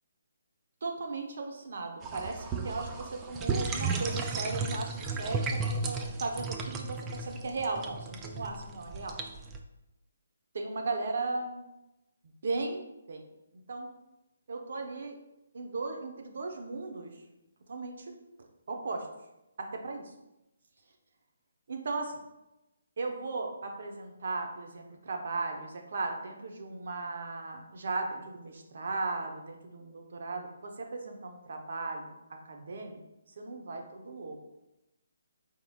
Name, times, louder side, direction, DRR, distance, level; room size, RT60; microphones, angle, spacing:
voice 1, 0.8-9.1 10.5-11.6 12.4-12.8 13.1-13.2 13.7-13.9 14.5-15.2 15.5-17.1 17.7-18.1 18.7-19.1 19.6-20.0 21.7-22.2 23.0-32.1 32.5-33.0 33.4-34.4, right 3 dB, 65° right, 3 dB, 0.8 m, -36 dB
sound 1, 2.0-9.6, right 4 dB, 20° right, 0.3 m, -34 dB
4.8 x 3.7 x 2.3 m, 0.93 s
figure-of-eight pair, 150°, 0 cm